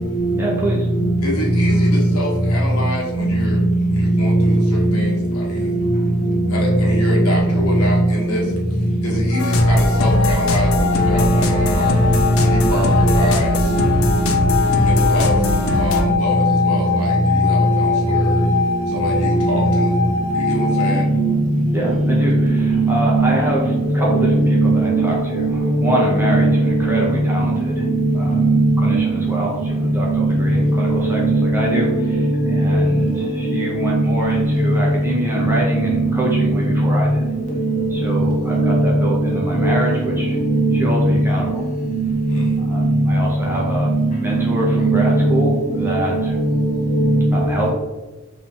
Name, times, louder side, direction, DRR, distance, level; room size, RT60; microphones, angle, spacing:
voice 1, 0.4-0.9 21.7-27.9 28.1-32.2 32.4-37.2 37.9-40.4 40.7-41.6 42.6-43.9 44.2-46.4 47.3-47.7, right 1 dB, 10° right, -4 dB, 0.6 m, -25 dB
voice 2, 1.2-5.8 6.5-8.5 9.0-12.0 12.4-13.7 14.8-18.5 18.9-20.0 20.3-21.1 42.3-42.5, left 1 dB, 85° left, -3 dB, 1.1 m, -27 dB
sound 1, 9.3-21.0, left 5 dB, 50° right, 0.8 m, -23 dB
sound 2, 9.4-16.1, left 2 dB, 65° left, 0.4 m, -21 dB
voice 3, 22.5-23.4 24.0-25.5 25.8-27.0 28.3-29.1 30.1-30.3 30.8-31.8 32.6-32.8 33.5-34.4 36.3-36.5 37.6-37.9 38.2-38.9 39.5-39.8 40.3-40.8 42.4-42.9 44.7-45.4 46.6-47.2, right 2 dB, 35° left, -1 dB, 0.7 m, -18 dB
3.7 x 2.7 x 2.8 m, 1.2 s
head